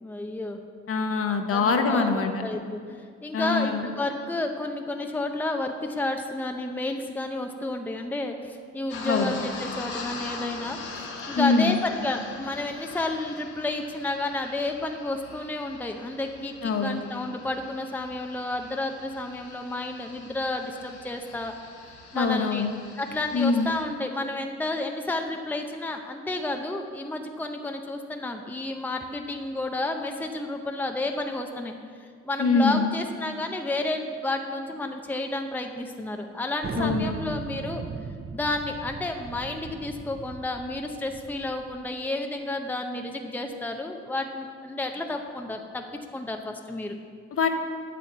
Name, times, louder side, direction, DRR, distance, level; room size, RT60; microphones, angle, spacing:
voice 1, 0.0-0.6 1.5-2.8 3.2-21.5 22.1-22.7 23.0-31.7 32.2-37.8 38.3-45.8 46.1-47.0, left 2 dB, 5° left, 4 dB, 0.7 m, -31 dB
voice 2, 0.9-2.3 3.3-3.9 9.1-9.3 11.4-11.8 16.6-17.0 22.1-22.7 23.3-23.7 32.4-32.9 36.8-37.1 47.3-47.5, left 4 dB, 45° left, 5 dB, 1.1 m, -23 dB
sound 1, 8.9-23.8, left 4 dB, 80° left, 1.8 m, -42 dB
Thunder, 36.6-41.8, right 5 dB, 35° right, 0.6 m, -37 dB
8.6 x 7.6 x 6.9 m, 2.1 s
cardioid pair, 90°, 30 cm